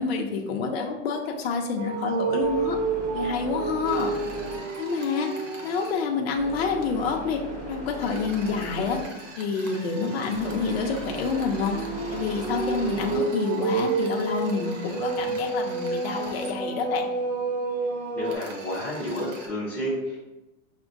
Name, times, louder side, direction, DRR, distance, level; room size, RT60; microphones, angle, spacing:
voice 1, 0.0-2.8 3.1-4.1 4.8-5.3 5.6-7.4 7.7-9.0 9.4-11.8 12.1-17.1, left 5 dB, 55° left, 1 dB, 0.6 m, -28 dB
sound 1, 0.9-13.8, right 1 dB, 25° right, 1.4 m, -39 dB
sound 2, 1.8-5.9 6.4-6.7 9.1-18.3, right 4 dB, 60° right, 0.5 m, -30 dB
sound 3, 3.8-6.0 8.0-16.5 18.2-19.5, right 3 dB, 80° right, 1.1 m, -44 dB
voice 2, 18.1-20.2, equal, 5° left, -10 dB, 0.5 m, -30 dB
6.0 x 2.1 x 2.5 m, 0.99 s
supercardioid pair, 180°, 37 cm